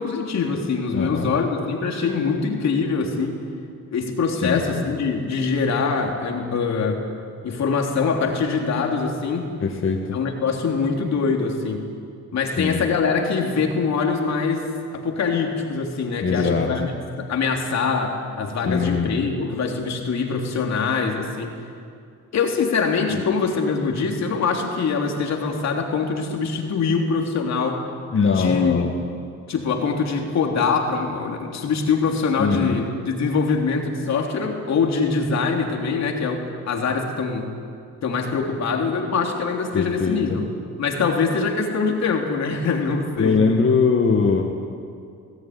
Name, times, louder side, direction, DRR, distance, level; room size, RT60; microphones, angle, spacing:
voice 1, 0.0-3.4 3.9-7.0 7.4-9.5 10.1-11.8 12.3-14.6 14.9-21.5 22.3-27.8 28.3-28.8 29.5-37.5 38.0-40.4 40.8-43.4, left 5 dB, 60° left, 1 dB, 3.4 m, -23 dB
voice 2, 0.9-1.3 4.3-4.8 9.6-10.2 12.6-12.8 16.2-16.9 18.7-19.1 23.1-23.2 28.1-28.9 32.4-32.8 39.7-40.4 43.2-44.4, left 5 dB, 45° left, 1 dB, 1.9 m, -21 dB
20.0 x 16.0 x 9.6 m, 2.3 s
cardioid pair, 90°, 30 cm